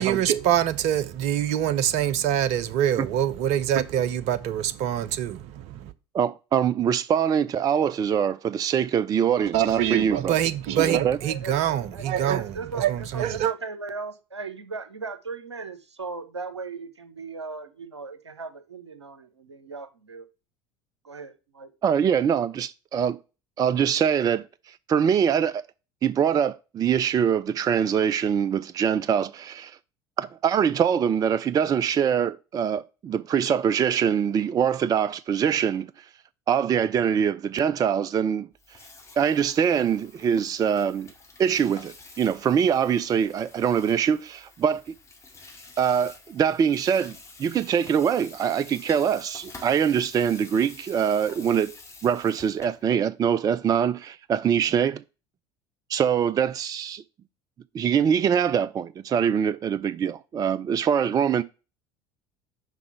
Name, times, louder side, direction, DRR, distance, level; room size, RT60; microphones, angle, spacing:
voice 1, 0.0-5.9 9.5-13.5, right 10 dB, 50° right, 0.8 m, -25 dB
voice 2, 6.1-10.4 10.8-11.2 21.8-23.2 23.6-24.4 24.9-25.6 26.0-29.7 30.2-35.9 36.5-38.5 39.2-41.1 41.4-44.8 45.8-51.8 52.0-55.0 55.9-57.0 57.7-61.4, right 8 dB, 25° right, 0.4 m, -23 dB
voice 3, 11.2-11.6 11.9-12.1 12.3-20.3 21.0-21.7, right 4 dB, 85° right, 0.8 m, -37 dB
Water tap faucet / Sink (filling or washing), 38.5-52.8, left 3 dB, 20° left, 2.0 m, -48 dB
5.9 x 4.8 x 5.6 m
figure-of-eight pair, 65°, 14 cm